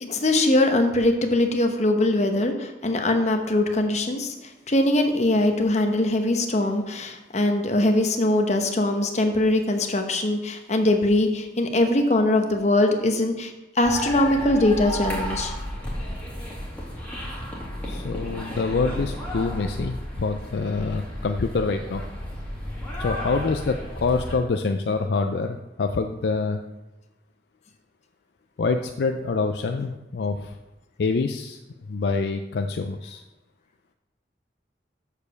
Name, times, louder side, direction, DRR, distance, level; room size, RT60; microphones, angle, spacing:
voice 1, 0.0-15.5, left 1 dB, 40° left, 5 dB, 0.9 m, -22 dB
sound 1, 13.8-24.3, equal, 10° left, 2.0 m, -33 dB
voice 2, 17.8-22.0 23.0-26.6 28.6-30.5 31.0-31.6 31.9-33.2, left 4 dB, 65° left, 6 dB, 0.4 m, -26 dB
6.7 x 5.0 x 6.9 m, 1.0 s
head